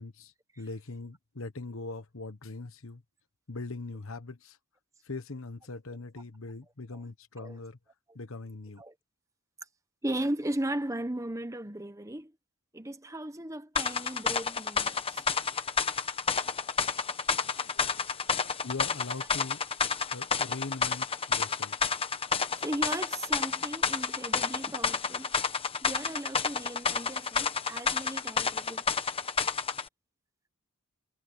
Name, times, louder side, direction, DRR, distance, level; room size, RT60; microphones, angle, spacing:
voice 1, 0.0-3.0 3.5-4.6 5.0-7.8 8.1-8.8 17.6-19.6 20.1-21.8, left 3 dB, 65° left, 1.2 m, -41 dB
voice 2, 10.0-12.3 12.7-15.2 22.6-25.3 25.8-28.8, right 1 dB, 15° right, 1.0 m, -36 dB
sound 1, 13.8-29.9, left 5 dB, 25° left, 1.1 m, -30 dB
head